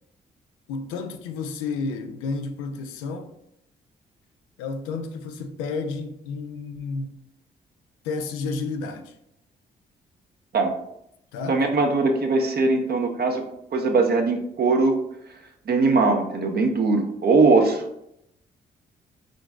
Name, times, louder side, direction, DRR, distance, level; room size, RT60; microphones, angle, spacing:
voice 1, 0.7-3.3 4.6-7.2 8.0-9.1 11.3-11.6, left 4 dB, 90° left, 0.4 m, -31 dB
voice 2, 11.5-13.4 13.7-15.0 15.7-17.8, right 3 dB, 55° right, 0.8 m, -20 dB
4.8 x 3.9 x 2.3 m
hypercardioid pair, 50°, 20 cm